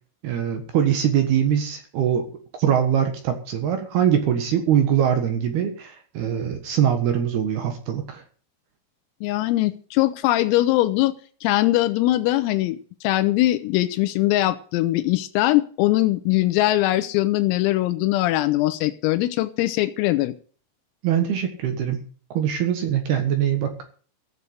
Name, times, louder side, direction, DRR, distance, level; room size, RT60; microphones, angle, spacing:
voice 1, 0.2-2.3 2.6-8.2 21.0-22.0 22.3-23.7, right 9 dB, 65° right, 7 dB, 3.0 m, -22 dB
voice 2, 9.2-11.2 11.4-20.3, left 16 dB, 85° left, 10 dB, 3.5 m, -21 dB
15.0 x 7.0 x 9.5 m, 0.42 s
omnidirectional pair, 6.0 m